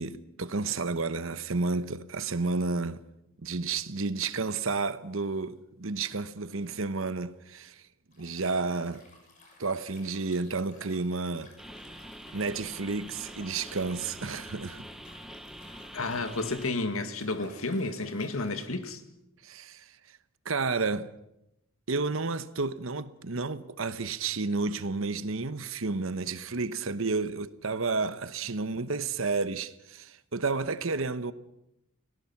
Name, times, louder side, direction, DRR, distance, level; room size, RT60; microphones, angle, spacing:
voice 1, 0.0-3.0 3.4-7.8 8.2-9.0 9.6-11.5 12.3-14.9 19.4-19.9 20.4-21.1 21.9-31.3, right 3 dB, 65° right, 1.0 m, -31 dB
Liquid, 8.1-18.7, left 2 dB, 35° left, 7.1 m, -56 dB
sound 1, 11.6-16.7, equal, ahead, 0.9 m, -45 dB
voice 2, 15.9-19.0, left 2 dB, 70° left, 2.1 m, -31 dB
30.0 x 17.5 x 6.0 m
head